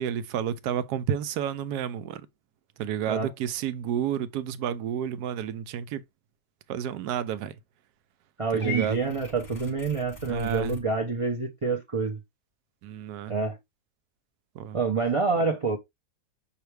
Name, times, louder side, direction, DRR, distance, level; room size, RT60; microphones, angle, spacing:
voice 1, 0.0-2.2 2.8-6.0 6.7-7.5 8.5-9.0 10.3-10.8 12.8-13.3 14.5-14.8, right 9 dB, 85° right, 1.1 m, -30 dB
voice 2, 8.4-12.2 13.3-13.6 14.7-15.8, right 4 dB, 50° right, 0.4 m, -27 dB
Purr / Meow, 8.6-10.8, left 3 dB, 30° left, 1.1 m, -39 dB
5.8 x 2.8 x 3.3 m
omnidirectional pair, 1.6 m